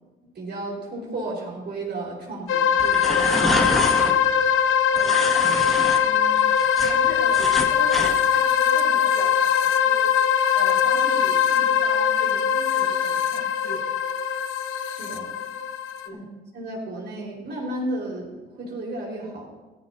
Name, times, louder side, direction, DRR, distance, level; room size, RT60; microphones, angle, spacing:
voice 1, 0.3-3.5 14.8-15.3 16.1-16.2 16.5-19.5, right 2 dB, 55° right, -3 dB, 4.7 m, -33 dB
sound 1, 2.5-16.1, left 8 dB, 85° left, 0.8 m, -21 dB
sound 2, 2.8-4.1 5.0-6.0 6.4-8.1, equal, ahead, 2.0 m, -27 dB
voice 2, 4.9-5.3 5.9-6.6 6.8-10.1 10.5-13.8 16.0-16.2, left 2 dB, 60° left, -2 dB, 4.8 m, -39 dB
16.0 x 15.0 x 2.8 m, 1.2 s
cardioid pair, 90°, 20 cm